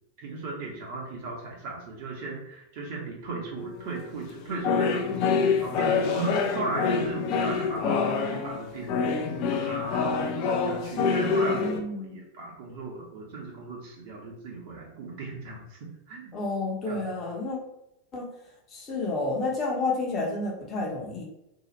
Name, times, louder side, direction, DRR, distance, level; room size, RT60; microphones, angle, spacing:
voice 1, 0.2-16.3 16.9-17.1, right 3 dB, 45° right, -2 dB, 0.9 m, -37 dB
sound 1, 3.6-3.9 4.3-11.8, left 5 dB, 45° left, 0.5 m, -26 dB
voice 2, 11.3-12.2 16.3-17.6 18.1-18.3 18.7-21.3, left 2 dB, 30° left, 0 dB, 0.9 m, -30 dB
2.8 x 2.4 x 4.1 m, 0.84 s
figure-of-eight pair, 90°, 0 cm